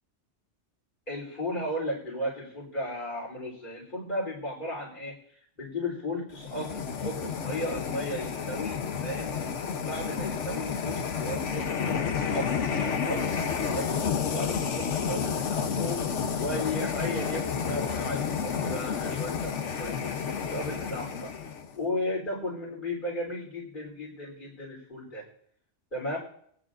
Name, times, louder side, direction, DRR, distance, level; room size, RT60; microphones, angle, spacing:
voice 1, 1.1-9.4 9.9-11.7 12.2-16.0 16.4-21.3 21.8-25.3 25.9-26.2, left 1 dB, 45° left, -4 dB, 3.9 m, -35 dB
sound 1, 6.3-21.7, left 6 dB, 90° left, 1.2 m, -30 dB
20.5 x 9.6 x 2.6 m, 0.66 s
omnidirectional pair, 1.2 m